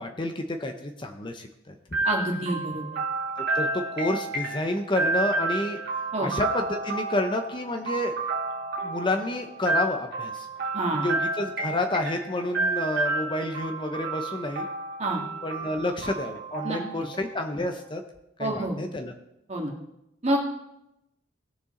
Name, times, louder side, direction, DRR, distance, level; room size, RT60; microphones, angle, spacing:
voice 1, 0.0-1.8 3.4-5.8 6.2-8.2 8.8-10.5 10.9-14.7 15.4-18.0 18.4-19.1, left 1 dB, 25° left, 5 dB, 0.8 m, -29 dB
sound 1, 1.9-17.7, right 3 dB, 55° right, 2.2 m, -31 dB
voice 2, 2.0-2.9 6.1-6.3 10.7-11.1 15.0-15.2 16.6-16.8 18.4-18.8 19.5-19.7 20.2-20.4, right 1 dB, 35° right, 0 dB, 2.0 m, -27 dB
18.5 x 6.8 x 3.8 m, 0.86 s
head